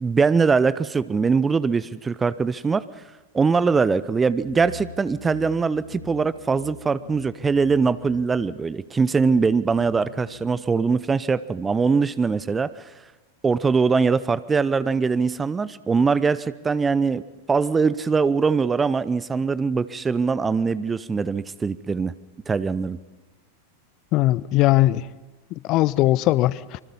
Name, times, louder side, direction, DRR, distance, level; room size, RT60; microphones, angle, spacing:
voice 1, 0.0-2.8 3.3-12.7 13.4-17.2 17.5-22.1 22.5-23.0, right 5 dB, 15° right, 17 dB, 0.7 m, -22 dB
sound 1, 4.3-10.6, left 4 dB, 75° left, 2.7 m, -43 dB
voice 2, 24.1-25.1 25.6-26.8, left 16 dB, 40° left, 20 dB, 0.7 m, -19 dB
26.0 x 25.0 x 5.6 m, 1.1 s
figure-of-eight pair, 90°, 0 cm